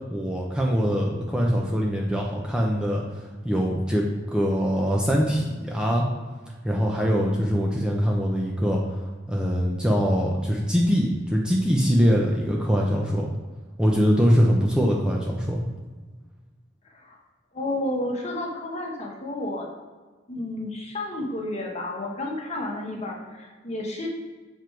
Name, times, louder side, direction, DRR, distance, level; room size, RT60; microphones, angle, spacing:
voice 1, 0.1-3.0 3.4-6.0 6.6-8.8 9.3-13.3 13.8-15.6, equal, 5° right, -2 dB, 0.7 m, -23 dB
voice 2, 16.8-17.2 17.5-19.7 20.3-24.1, left 1 dB, 35° left, -1 dB, 1.4 m, -31 dB
7.3 x 4.6 x 4.6 m, 1.4 s
head